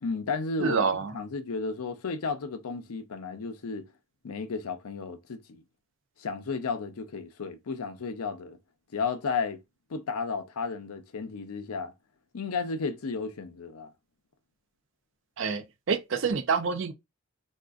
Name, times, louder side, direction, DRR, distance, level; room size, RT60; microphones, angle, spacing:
voice 1, 0.0-0.9 1.1-3.9 4.2-5.6 6.2-8.6 8.9-9.6 9.9-11.9 12.3-13.9, left 4 dB, 90° left, 0.6 m, -33 dB
voice 2, 0.6-1.1 15.4-16.9, right 5 dB, 60° right, 0.4 m, -27 dB
3.7 x 2.3 x 2.3 m
head